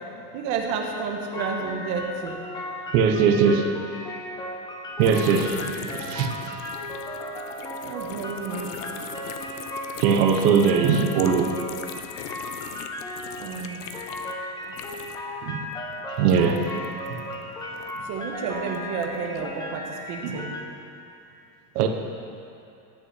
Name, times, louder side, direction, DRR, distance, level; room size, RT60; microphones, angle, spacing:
voice 1, 0.3-2.5 5.1-5.5 7.8-8.8 13.4-13.8 18.0-20.5, right 5 dB, 40° right, 1.1 m, -31 dB
sound 1, 1.3-20.6, left 1 dB, 10° left, 0.5 m, -36 dB
voice 2, 2.9-3.7 5.0-6.5 10.0-11.6 15.4-15.7 16.2-16.8 17.1-17.2 20.2-20.4 21.7-21.9, right 6 dB, 85° right, 1.0 m, -21 dB
sound 2, 5.0-15.4 15.6-18.2 18.7-19.5, left 9 dB, 85° left, 0.8 m, -41 dB
10.5 x 5.7 x 7.9 m
cardioid pair, 180°, 46 cm